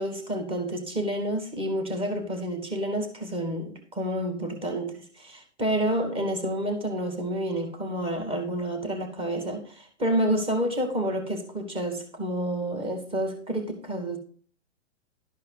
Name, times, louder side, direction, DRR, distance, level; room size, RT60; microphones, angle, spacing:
voice 1, 0.0-14.2, right 1 dB, 15° right, 2.2 m, -29 dB
12.5 x 4.8 x 4.8 m
hypercardioid pair, 130°, 36 cm